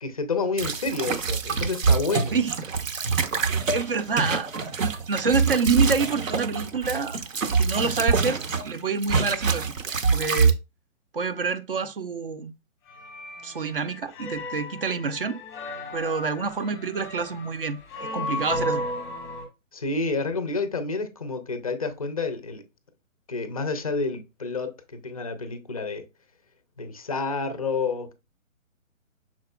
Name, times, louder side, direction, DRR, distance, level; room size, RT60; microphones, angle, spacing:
voice 1, 0.0-2.4 19.7-22.6 23.3-26.0 26.8-28.1, left 3 dB, 30° left, 0.4 m, -29 dB
sound 1, 0.6-8.7 9.0-10.5, right 5 dB, 70° right, 0.8 m, -25 dB
voice 2, 3.5-4.5 4.8-7.2 7.6-9.7 10.0-10.5 11.1-12.5 13.4-15.4 15.9-18.8, right 4 dB, 45° right, 0.4 m, -27 dB
sound 2, 12.9-19.4, left 1 dB, 5° left, 0.8 m, -34 dB
6.0 x 4.0 x 2.2 m
figure-of-eight pair, 140°, 41 cm